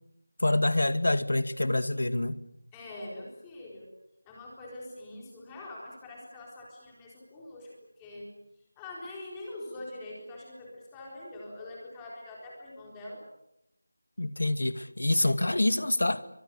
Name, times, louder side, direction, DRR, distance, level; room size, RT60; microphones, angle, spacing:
voice 1, 0.4-2.4 14.2-16.2, left 1 dB, 70° left, 11 dB, 2.2 m, -26 dB
voice 2, 2.7-3.9 4.2-8.3 8.8-13.2, left 1 dB, 5° left, -3 dB, 4.1 m, -44 dB
29.5 x 24.5 x 7.0 m, 0.81 s
figure-of-eight pair, 175°, 0 cm